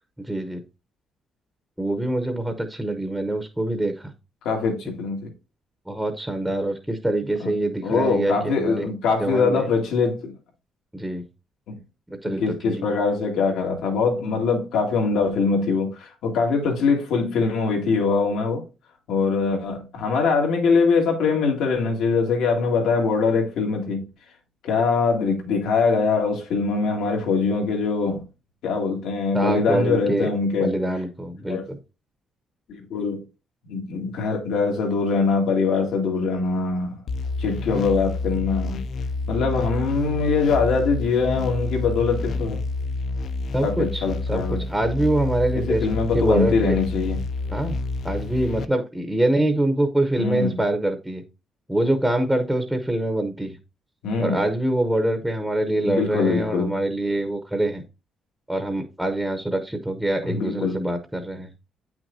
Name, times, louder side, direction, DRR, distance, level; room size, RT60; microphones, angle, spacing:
voice 1, 0.2-0.6 1.8-4.1 5.9-8.9 9.2-9.7 10.9-11.2 12.1-12.8 29.3-30.3 30.6-31.8 43.5-45.9 46.1-46.8 47.5-47.8 48.0-51.2 51.7-53.6 54.2-57.8 58.5-61.5, right 1 dB, 5° right, 0.7 m, -25 dB
voice 2, 4.4-5.3 7.4-7.5 7.8-10.3 11.7-11.8 12.2-18.6 19.1-24.1 24.6-28.2 28.6-30.8 31.5-31.6 32.7-33.2 33.7-37.0 37.4-38.8 39.3-42.6 43.6-44.6 45.5-47.2 50.2-50.6 54.0-54.4 55.9-56.7 60.2-60.8, left 4 dB, 85° left, 2.1 m, -23 dB
sound 1, 37.1-48.7, left 3 dB, 45° left, 0.4 m, -29 dB
8.9 x 6.0 x 2.7 m
cardioid pair, 175°, 0 cm